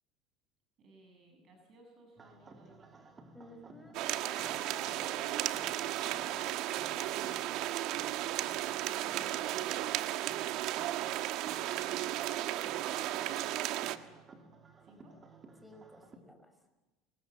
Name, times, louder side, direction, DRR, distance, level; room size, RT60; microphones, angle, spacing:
voice 1, 0.8-3.2 8.9-9.8 14.8-15.2, right 1 dB, 40° right, 3 dB, 7.2 m, -61 dB
sound 1, 2.2-16.2, right 4 dB, 25° right, 3.1 m, -56 dB
voice 2, 3.3-6.5 15.6-16.6, equal, ahead, 7 dB, 5.4 m, -53 dB
light.rain.on.blind, 3.9-14.0, right 14 dB, 60° right, 1.4 m, -34 dB
29.5 x 22.0 x 8.3 m, 1.1 s
supercardioid pair, 125°, 0 cm